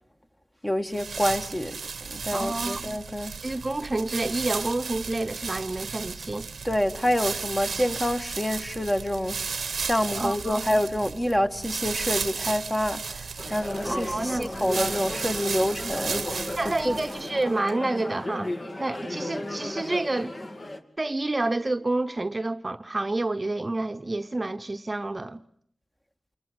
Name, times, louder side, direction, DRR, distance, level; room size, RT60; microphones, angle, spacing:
voice 1, 0.6-1.8 2.1-3.3 6.6-16.2 16.7-17.0, equal, 15° left, 1.8 m, -27 dB
sound 1, 0.9-17.4, right 5 dB, 85° right, 1.0 m, -34 dB
voice 2, 2.3-2.8 3.4-6.5 10.2-10.6 13.8-14.5 16.6-18.5 18.8-20.4 21.0-25.4, right 2 dB, 35° right, 1.0 m, -29 dB
sound 2, 13.4-20.8, left 1 dB, 45° left, 2.5 m, -35 dB
28.0 x 21.5 x 7.9 m
cardioid pair, 50°, 0 cm